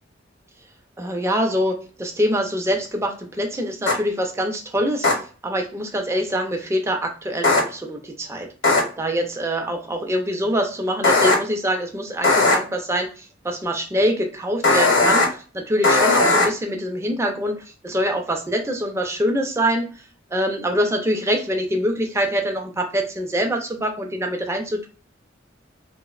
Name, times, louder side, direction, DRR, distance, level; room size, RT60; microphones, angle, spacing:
voice 1, 1.0-8.5 9.0-19.9 20.3-24.9, equal, 15° right, 3 dB, 0.4 m, -24 dB
sound 1, 3.9-4.0 5.0-5.1 7.4-7.6 8.6-8.8 11.0-11.3 12.2-12.6 14.6-15.3 15.8-16.5, left 3 dB, 70° left, 0.8 m, -16 dB
2.9 x 2.0 x 2.3 m, 0.37 s
head